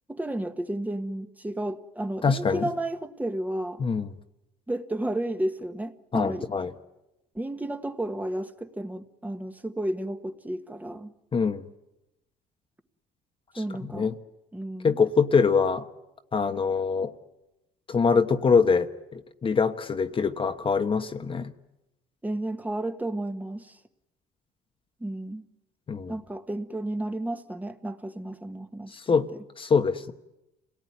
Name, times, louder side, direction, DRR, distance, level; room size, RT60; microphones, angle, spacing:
voice 1, 0.1-3.8 4.7-6.5 7.3-11.1 13.6-14.1 14.5-15.0 22.2-23.8 25.0-25.5 26.1-29.0, right 1 dB, 10° right, 7 dB, 1.5 m, -32 dB
voice 2, 2.2-2.7 3.8-4.1 6.1-6.7 11.3-11.6 13.9-14.1 14.8-15.8 16.3-17.1 17.9-21.5 25.9-26.1 28.9-29.3 29.6-30.1, left 5 dB, 30° left, 7 dB, 1.2 m, -24 dB
28.5 x 18.5 x 9.7 m, 0.94 s
cardioid pair, 110°, 17 cm